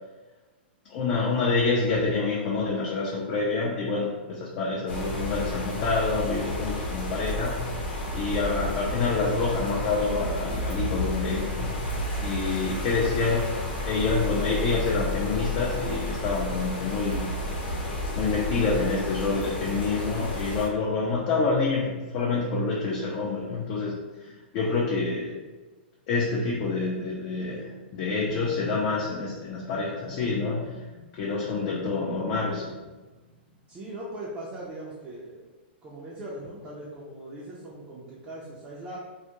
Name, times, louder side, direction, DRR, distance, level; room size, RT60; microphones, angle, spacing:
voice 1, 0.9-7.5 8.1-11.7 12.2-13.5 13.9-17.3 18.2-24.0 24.5-25.3 26.1-30.8 31.2-32.7, left 4 dB, 40° left, -4 dB, 0.5 m, -27 dB
sound 1, 4.9-20.7, left 1 dB, 70° left, 0.8 m, -31 dB
voice 2, 33.7-35.5 35.8-39.0, right 1 dB, 20° right, -6 dB, 0.5 m, -40 dB
2.3 x 2.0 x 2.9 m, 1.2 s
hypercardioid pair, 135°, 6 cm